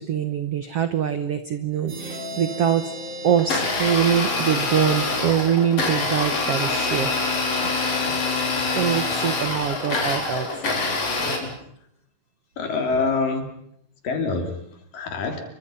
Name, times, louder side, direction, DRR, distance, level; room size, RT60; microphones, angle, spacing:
voice 1, 0.0-2.9 3.2-7.1 7.6-7.7 8.0-8.2 8.7-10.5, right 9 dB, 70° right, 10 dB, 1.4 m, -23 dB
sound 1, 1.9-5.5, right 1 dB, 55° right, 7.8 m, -37 dB
Domestic sounds home sounds, 3.4-11.4, left 3 dB, 40° left, 5.1 m, -25 dB
voice 2, 11.2-11.5 12.6-13.5 14.0-14.5 14.9-15.4, left 4 dB, 60° left, 5 dB, 4.8 m, -25 dB
28.5 x 24.0 x 5.8 m, 0.72 s
omnidirectional pair, 4.4 m